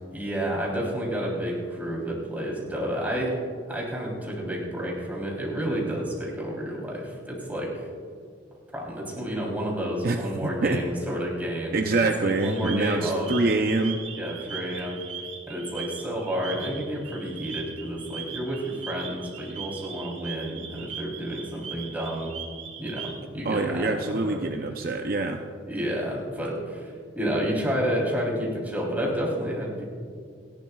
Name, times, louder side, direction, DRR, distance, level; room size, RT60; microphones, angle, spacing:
voice 1, 0.1-3.4 3.7-7.9 8.7-13.4 14.2-15.0 15.5-22.4 22.8-24.5 25.7-29.8, equal, 10° right, -4 dB, 3.4 m, -30 dB
voice 2, 10.0-10.8 11.7-14.0 23.4-25.4, right 3 dB, 50° right, 4 dB, 0.6 m, -25 dB
sound 1, 12.4-23.2, right 7 dB, 80° right, 1.7 m, -40 dB
29.0 x 11.5 x 2.4 m, 2.2 s
head